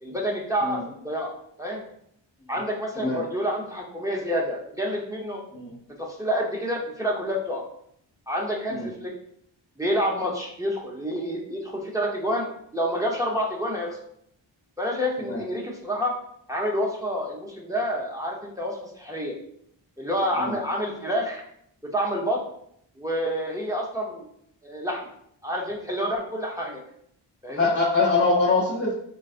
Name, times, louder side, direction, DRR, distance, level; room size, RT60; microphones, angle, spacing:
voice 1, 0.0-1.3 1.6-1.8 2.5-5.4 6.0-7.6 8.3-9.1 9.8-12.5 12.7-14.0 14.8-16.1 16.5-19.3 20.0-21.4 21.9-22.4 23.0-24.2 24.6-25.0 25.4-26.8 27.4-27.7, equal, 5° right, -2 dB, 0.8 m, -28 dB
voice 2, 27.6-28.9, left 3 dB, 30° left, -6 dB, 0.8 m, -23 dB
3.8 x 2.3 x 2.5 m, 0.70 s
cardioid pair, 50°, 45 cm